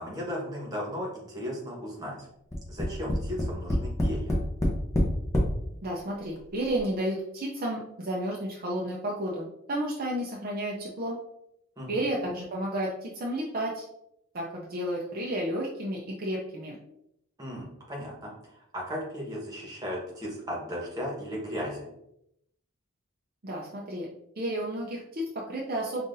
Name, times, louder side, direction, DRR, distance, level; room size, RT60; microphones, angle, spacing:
voice 1, 0.0-2.2 2.7-4.4 11.8-12.0 17.4-18.3 18.7-21.9, equal, 15° right, -3 dB, 1.2 m, -36 dB
Tap, 2.5-5.5 6.4-6.5 6.8-6.9, equal, 15° left, 0.7 m, -26 dB
voice 2, 5.8-11.2 11.9-13.8 14.3-16.8 23.4-24.1 24.4-26.0, right 1 dB, 45° right, -3 dB, 0.5 m, -32 dB
5.4 x 2.5 x 2.6 m, 0.78 s
head